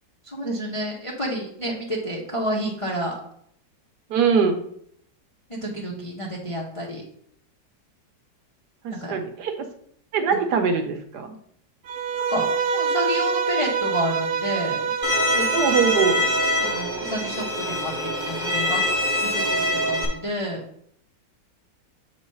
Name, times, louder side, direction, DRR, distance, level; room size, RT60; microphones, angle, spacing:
voice 1, 0.3-3.2 5.5-7.0 9.0-9.2 10.3-10.4 12.1-14.9 15.3-15.5 16.6-18.8 19.1-19.6 19.9-20.6, equal, 25° left, -2 dB, 0.7 m, -29 dB
voice 2, 4.1-4.6 8.8-9.7 10.1-11.3 15.5-16.3, right 6 dB, 70° right, 6 dB, 1.3 m, -22 dB
Bowed string instrument, 11.9-16.9, right 6 dB, 90° right, 1.3 m, -26 dB
Bowed string instrument 2, 15.0-20.1, left 1 dB, 5° right, 1.3 m, -24 dB
7.3 x 3.2 x 5.4 m, 0.66 s
omnidirectional pair, 1.9 m